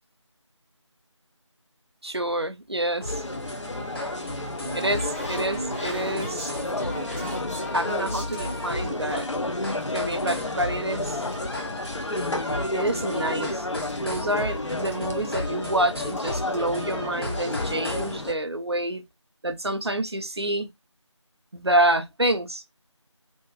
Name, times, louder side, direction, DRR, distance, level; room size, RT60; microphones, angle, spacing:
voice 1, 2.0-3.2 4.7-6.5 7.7-9.4 9.9-11.2 12.7-13.7 14.0-19.0 19.4-20.7 21.5-22.6, right 1 dB, 55° right, 0.6 m, -27 dB
sound 1, 3.0-18.2, left 1 dB, 50° left, 1.3 m, -35 dB
sound 2, 3.1-18.3, left 2 dB, 70° left, 0.7 m, -32 dB
sound 3, 3.9-9.2 9.6-11.4 11.7-12.4 12.7-14.0 14.4-14.5 14.7-14.9 15.2-15.3 16.2-16.3 16.5-16.8 17.3-17.6, right 1 dB, 25° left, 0.9 m, -39 dB
2.7 x 2.6 x 2.3 m
figure-of-eight pair, 175°, 16 cm